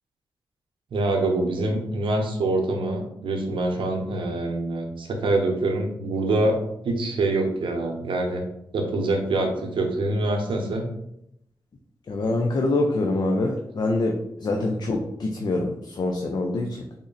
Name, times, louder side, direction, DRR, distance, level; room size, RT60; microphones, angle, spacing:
voice 1, 0.9-6.6 6.8-8.4 8.7-10.9, right 2 dB, 80° right, 3 dB, 0.7 m, -25 dB
voice 2, 12.1-14.1 14.4-16.8, left 2 dB, 55° left, 1 dB, 0.5 m, -25 dB
3.7 x 2.1 x 3.9 m, 0.77 s
cardioid pair, 55°, 8 cm